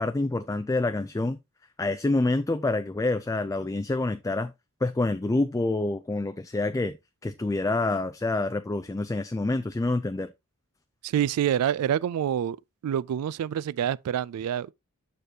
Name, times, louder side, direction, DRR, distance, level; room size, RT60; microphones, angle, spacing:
voice 1, 0.0-1.4 1.8-4.5 4.8-7.0 7.2-10.3, left 2 dB, 15° left, 0.3 m, -27 dB
voice 2, 11.0-12.6 12.8-14.7, right 9 dB, 75° right, 0.3 m, -27 dB
6.7 x 6.5 x 2.7 m
head